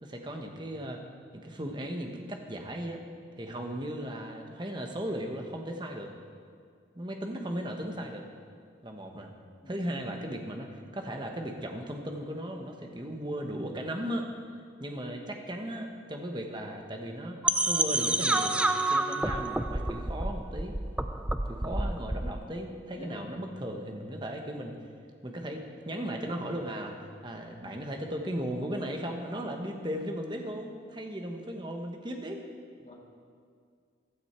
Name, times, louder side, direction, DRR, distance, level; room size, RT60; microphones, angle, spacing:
voice 1, 0.0-1.0 1.3-3.0 3.4-6.1 6.9-8.3 8.8-9.3 9.7-14.3 14.8-18.6 18.9-20.7 21.5-24.8 25.2-26.9 27.2-32.4, equal, 25° right, 3 dB, 1.2 m, -36 dB
voice 2, 9.6-10.0 21.6-21.9 22.9-23.2 32.8-32.9, left 1 dB, 35° left, -2 dB, 1.8 m, -48 dB
sound 1, 17.4-22.4, right 2 dB, 5° right, 0.3 m, -29 dB
15.0 x 12.0 x 4.5 m, 2.2 s
head